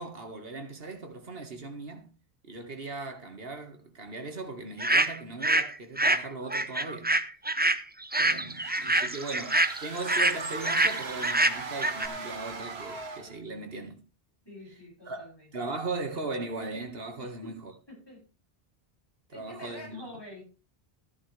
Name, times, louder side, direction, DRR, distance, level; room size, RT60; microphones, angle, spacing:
voice 1, 0.0-2.1 2.4-7.2 8.1-14.0 15.1-15.3 15.5-17.7 19.3-20.0, right 3 dB, 70° right, 2.0 m, -38 dB
sound 1, 4.8-5.7 6.0-12.1, right 2 dB, 15° right, 0.4 m, -26 dB
voice 2, 8.3-8.8 14.4-15.5 17.2-17.6 17.9-18.2 19.3-20.4, left 1 dB, 25° left, 7.9 m, -47 dB
sound 2, 8.5-13.4, right 4 dB, 90° right, 1.7 m, -39 dB
14.5 x 10.5 x 3.4 m
omnidirectional pair, 1.0 m